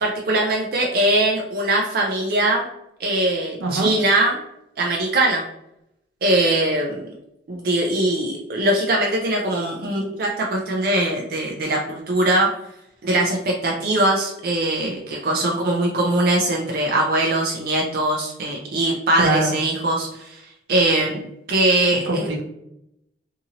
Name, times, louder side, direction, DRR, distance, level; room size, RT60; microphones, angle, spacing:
voice 1, 0.0-2.7 3.0-4.4 4.8-5.4 6.2-7.1 7.5-12.5 13.0-20.4 20.7-21.2 21.5-22.3, right 1 dB, 50° right, -1 dB, 0.4 m, -21 dB
voice 2, 19.2-19.6 22.1-22.4, right 2 dB, 80° right, 0 dB, 0.7 m, -22 dB
2.7 x 2.6 x 2.8 m, 0.81 s
head